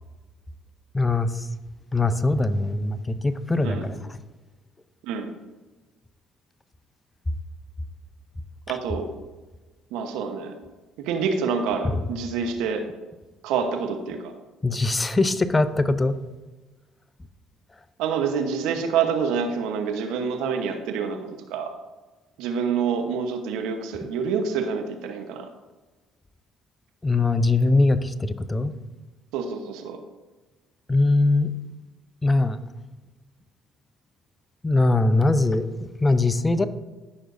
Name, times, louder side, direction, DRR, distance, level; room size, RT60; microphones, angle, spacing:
voice 1, 0.9-1.5 1.9-4.2 8.7-8.8 11.8-12.0 14.6-16.1 27.0-28.7 30.9-31.5 32.2-32.6 34.6-36.7, left 2 dB, 20° left, 12 dB, 0.6 m, -22 dB
voice 2, 8.7-9.1 9.9-10.5 11.0-12.8 13.4-14.3 18.0-21.2 21.5-21.7 22.4-25.5 29.3-30.0, right 6 dB, 80° right, 6 dB, 1.0 m, -27 dB
14.0 x 6.2 x 2.6 m, 1.2 s
supercardioid pair, 70°, 0 cm